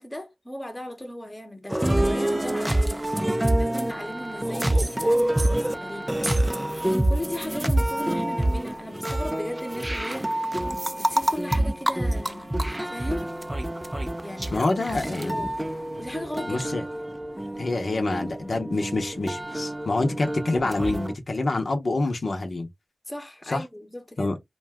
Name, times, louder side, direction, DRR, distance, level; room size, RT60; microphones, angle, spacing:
voice 1, 0.0-3.0 3.6-6.2 7.1-13.3 14.2-15.5 16.0-16.8 23.1-24.3, left 1 dB, 20° left, 0.9 m, -37 dB
sound 1, 1.7-21.1, right 1 dB, 15° right, 0.4 m, -27 dB
voice 2, 14.5-15.5 16.5-16.8 17.6-22.7 23.5-23.6 24.2-24.3, left 2 dB, 65° left, 0.7 m, -26 dB
2.5 x 2.3 x 3.3 m
cardioid pair, 45°, 0 cm